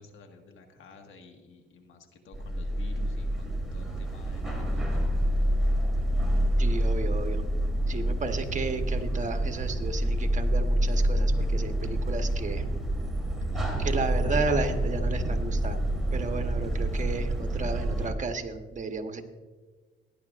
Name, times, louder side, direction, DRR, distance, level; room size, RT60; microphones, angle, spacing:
voice 1, 0.0-5.0, left 4 dB, 80° left, 4 dB, 1.6 m, -50 dB
sound 1, 2.3-18.1, right 1 dB, ahead, 3.1 m, -27 dB
voice 2, 6.6-7.4 7.9-12.6 13.8-19.2, right 4 dB, 40° right, 6 dB, 1.1 m, -33 dB
17.0 x 10.5 x 2.5 m, 1.4 s
cardioid pair, 95°, 20 cm